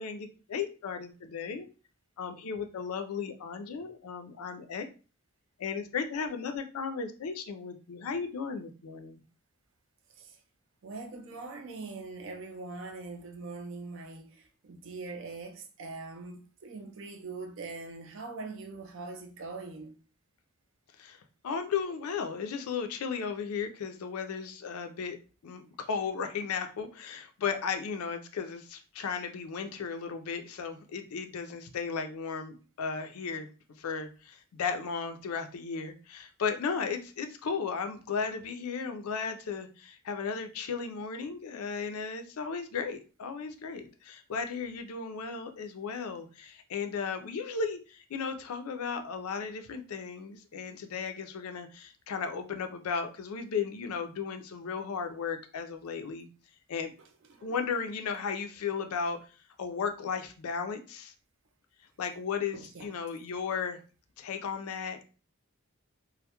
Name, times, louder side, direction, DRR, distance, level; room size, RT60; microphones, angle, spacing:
voice 1, 0.0-1.7 2.2-4.9 5.6-9.2 21.0-25.2 25.4-33.5 33.8-56.3 56.7-56.9 57.4-59.2 59.6-61.1 62.0-63.8 64.2-65.0, left 5 dB, 80° left, 0.4 m, -35 dB
voice 2, 10.8-19.9 57.3-57.5 62.5-62.9, right 3 dB, 55° right, 0.4 m, -42 dB
2.2 x 2.0 x 2.8 m
head